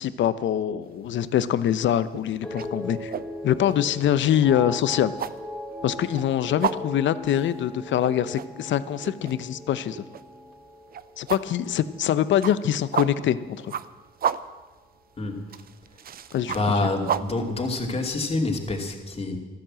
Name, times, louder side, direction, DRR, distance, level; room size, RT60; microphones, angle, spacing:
voice 1, 0.0-3.1 3.4-5.1 5.8-10.0 11.2-13.7 16.3-16.6, left 10 dB, 70° left, 14 dB, 0.8 m, -24 dB
sound 1, 0.9-1.3 1.6-18.5, right 8 dB, 50° right, 0.7 m, -33 dB
sound 2, 2.4-12.8 13.1-13.6, left 1 dB, ahead, 3.9 m, -39 dB
voice 2, 15.2-15.5 16.5-19.4, left 2 dB, 30° left, 2 dB, 2.7 m, -27 dB
14.0 x 13.5 x 7.6 m, 1.3 s
cardioid pair, 90°, 20 cm